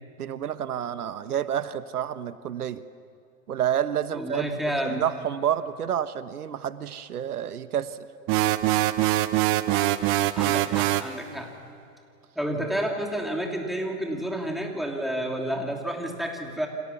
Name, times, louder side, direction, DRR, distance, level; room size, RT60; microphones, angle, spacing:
voice 1, 0.2-2.8 3.5-4.5 4.8-8.1, right 9 dB, 90° right, 12 dB, 1.3 m, -29 dB
voice 2, 4.1-5.0 10.4-11.5 12.4-16.7, right 1 dB, ahead, 1 dB, 2.9 m, -30 dB
sound 1, 8.3-11.1, right 15 dB, 30° right, 1.0 m, -23 dB
29.5 x 26.0 x 7.3 m, 2.5 s
hypercardioid pair, 140°, 44 cm